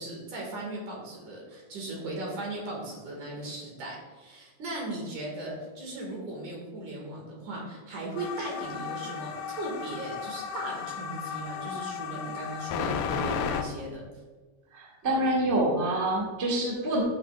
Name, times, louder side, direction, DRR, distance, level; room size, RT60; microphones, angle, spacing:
voice 1, 0.0-14.0, right 2 dB, 65° right, -3 dB, 3.4 m, -37 dB
sound 1, 8.2-13.6, left 7 dB, 80° left, 2.2 m, -34 dB
voice 2, 14.7-17.0, right 1 dB, 25° right, -5 dB, 1.9 m, -26 dB
14.5 x 6.8 x 2.5 m, 1.3 s
omnidirectional pair, 3.8 m